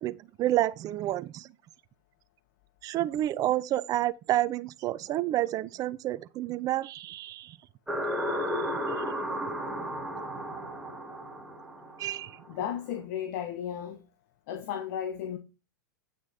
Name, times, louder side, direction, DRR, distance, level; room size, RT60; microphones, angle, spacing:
voice 1, 0.0-1.5 2.8-7.6 8.4-9.0 12.0-12.4, right 14 dB, 35° right, 0.6 m, -30 dB
sound 1, 7.9-12.5, equal, 5° right, 2.0 m, -33 dB
voice 2, 12.5-14.0 14.5-15.4, left 9 dB, 55° left, 1.3 m, -34 dB
9.2 x 6.1 x 4.3 m
hypercardioid pair, 100°, 11 cm